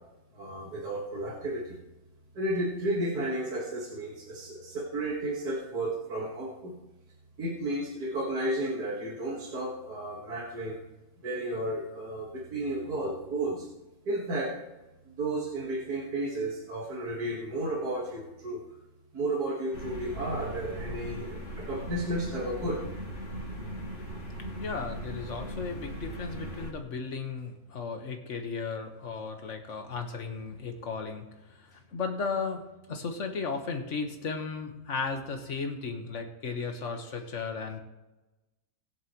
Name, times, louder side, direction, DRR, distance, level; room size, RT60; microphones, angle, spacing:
voice 1, 0.3-1.8 2.3-6.8 7.4-10.8 11.2-13.7 14.1-14.5 15.1-18.6 19.1-22.8, right 1 dB, 80° right, -4 dB, 2.2 m, -33 dB
sound 1, 19.7-26.7, equal, 35° left, 2.7 m, -39 dB
voice 2, 24.6-32.6 32.9-37.8, left 4 dB, 50° left, 4 dB, 1.6 m, -35 dB
20.5 x 7.5 x 3.1 m, 1.0 s
omnidirectional pair, 1.6 m